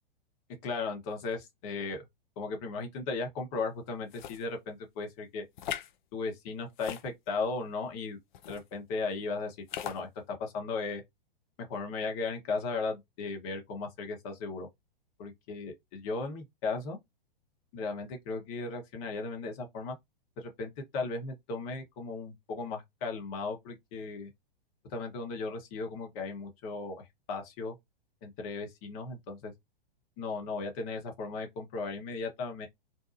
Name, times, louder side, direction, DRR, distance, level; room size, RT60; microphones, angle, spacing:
voice 1, 0.6-2.0 2.4-5.4 6.1-8.2 8.5-9.6 9.8-11.0 11.7-14.7 15.2-17.0 17.7-19.9 20.4-24.3 24.9-27.8 28.2-29.5 30.2-32.7, left 3 dB, 40° left, 1.0 m, -36 dB
sound 1, 4.1-4.4 5.6-5.9 6.7-7.5 8.3-8.6 9.7-10.0, left 10 dB, 55° left, 0.5 m, -39 dB
2.7 x 2.2 x 2.5 m
figure-of-eight pair, 110°, 29 cm